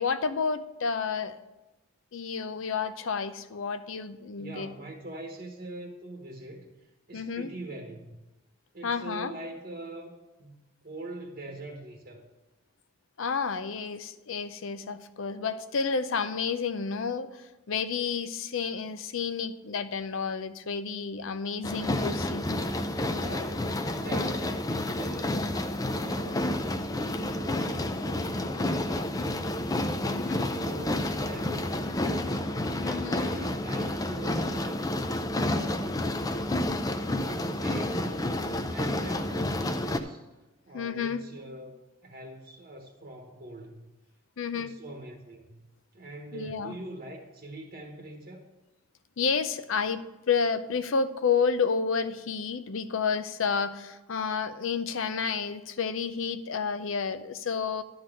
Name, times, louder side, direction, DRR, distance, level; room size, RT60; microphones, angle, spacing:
voice 1, 0.0-1.4 2.1-4.7 7.1-7.5 8.8-9.3 13.2-22.5 30.1-30.5 32.8-33.3 40.7-41.2 44.4-44.8 46.3-46.8 49.2-57.8, left 5 dB, 70° left, 13 dB, 0.6 m, -30 dB
voice 2, 4.4-8.2 8.7-10.5 10.8-12.2 23.1-25.4 25.9-26.7 27.3-32.3 32.8-36.1 37.1-40.3 40.7-41.7 42.0-43.8 44.5-45.6 45.9-48.5, right 2 dB, 45° right, 1 dB, 1.1 m, -43 dB
sound 1, 21.6-40.0, left 1 dB, 15° left, 0.4 m, -30 dB
11.5 x 4.0 x 7.6 m, 1.1 s
head